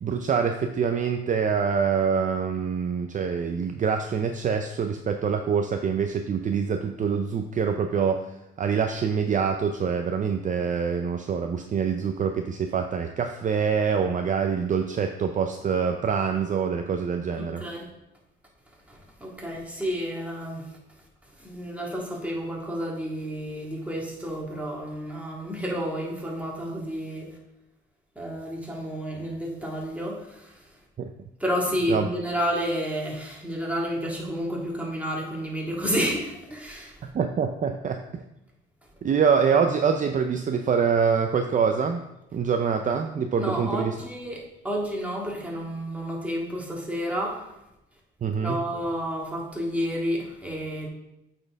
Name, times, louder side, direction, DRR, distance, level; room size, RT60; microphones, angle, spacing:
voice 1, 0.0-17.6 31.0-31.1 31.9-32.1 37.0-38.2 39.0-42.0 42.3-44.0 48.2-48.6, right 6 dB, 40° right, 5 dB, 0.5 m, -25 dB
voice 2, 17.4-17.9 18.9-20.6 21.4-27.3 28.1-30.6 31.4-36.9 43.4-47.4 48.4-50.9, equal, 5° right, -2 dB, 1.8 m, -30 dB
8.4 x 4.4 x 3.5 m, 0.88 s
cardioid pair, 90°, 20 cm